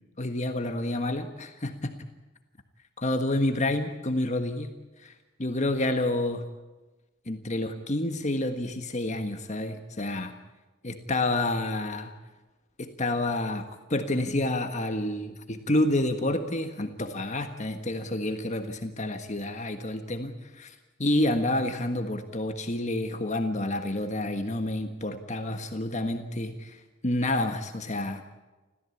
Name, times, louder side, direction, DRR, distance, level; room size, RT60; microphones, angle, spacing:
voice 1, 0.2-1.9 3.0-4.7 5.0-5.1 5.4-6.4 7.3-10.3 10.8-12.1 12.8-20.7 21.0-28.2, left 1 dB, 35° left, 6 dB, 1.5 m, -29 dB
29.5 x 14.5 x 8.5 m, 1.1 s
head